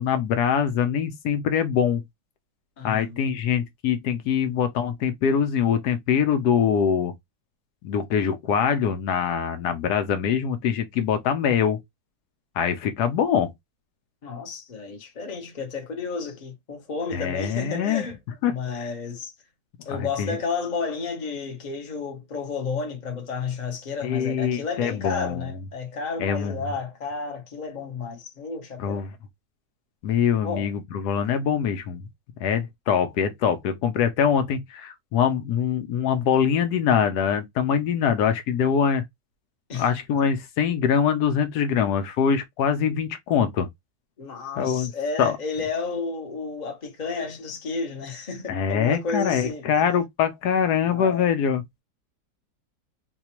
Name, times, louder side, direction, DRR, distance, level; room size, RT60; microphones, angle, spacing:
voice 1, 0.0-2.0 2.8-7.1 7.8-11.8 12.6-13.5 17.1-18.0 18.4-18.9 19.9-20.4 24.0-25.5 26.2-26.5 28.8-29.1 30.0-32.0 32.4-39.0 39.7-43.7 44.6-44.9 45.2-45.4 48.5-51.6, left 7 dB, 75° left, 1.1 m, -23 dB
voice 2, 2.8-3.2 14.2-18.2 18.4-19.3 19.8-29.0 30.4-30.7 39.7-39.9 44.2-49.6 50.7-51.3, left 4 dB, 35° left, 0.8 m, -32 dB
4.1 x 2.3 x 2.9 m
omnidirectional pair, 1.7 m